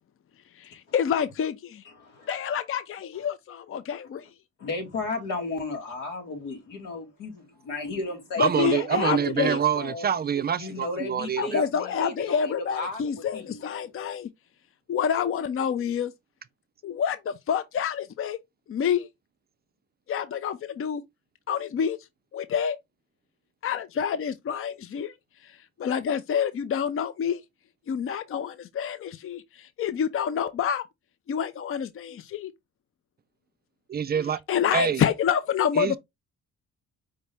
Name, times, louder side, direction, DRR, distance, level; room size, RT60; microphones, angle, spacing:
voice 1, 0.6-1.8 2.3-4.3 8.4-9.6 11.4-14.3 14.9-16.1 16.8-18.4 18.7-19.1 20.1-21.0 21.5-22.0 22.3-22.8 23.6-25.1 25.4-25.5 25.8-27.4 27.9-30.8 31.3-32.5 34.5-36.0, left 8 dB, 45° left, 0.6 m, -27 dB
voice 2, 1.9-2.3 4.6-7.3 7.6-10.1 10.6-13.6, left 3 dB, 90° left, 2.0 m, -34 dB
voice 3, 8.4-11.7 33.9-34.4 34.7-35.0 35.8-36.0, right 8 dB, 35° right, 0.4 m, -26 dB
5.2 x 2.7 x 3.4 m
cardioid pair, 90°, 30 cm